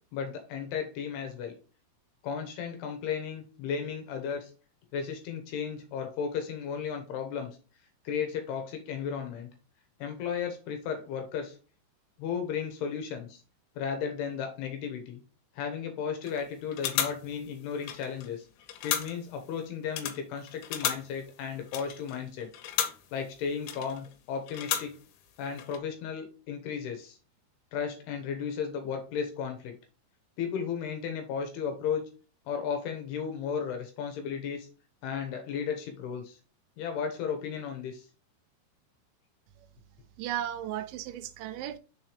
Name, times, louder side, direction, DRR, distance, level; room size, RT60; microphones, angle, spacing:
voice 1, 0.1-1.5 2.2-4.5 4.9-7.5 8.0-9.5 10.0-11.6 12.2-13.4 13.8-15.2 15.6-18.5 18.8-22.5 23.1-24.9 25.4-27.2 27.7-29.7 30.4-32.0 32.5-34.7 35.0-36.4 36.8-38.1, left 7 dB, 75° left, 2.7 m, -34 dB
sound 1, 16.3-16.4 16.7-18.3 18.6-19.4 19.8-23.2 23.6-24.1 24.5-25.2 25.5-25.8, left 10 dB, 90° left, 3.2 m, -35 dB
voice 2, 40.2-41.8, right 11 dB, 85° right, 3.0 m, -35 dB
6.4 x 4.4 x 3.4 m
omnidirectional pair, 5.3 m